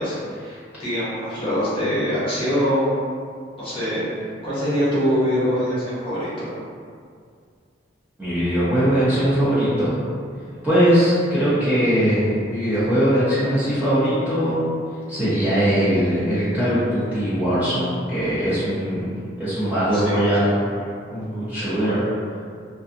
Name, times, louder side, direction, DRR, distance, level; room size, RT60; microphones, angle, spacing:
voice 1, 0.0-2.9 3.6-4.0 4.4-6.5 19.6-20.3 21.2-21.9, equal, 30° left, -10 dB, 0.8 m, -24 dB
voice 2, 8.2-9.9 10.6-14.6 15.1-19.1 19.4-20.5 21.1-22.0, equal, 10° right, -13 dB, 0.6 m, -20 dB
2.5 x 2.4 x 2.5 m, 2.2 s
head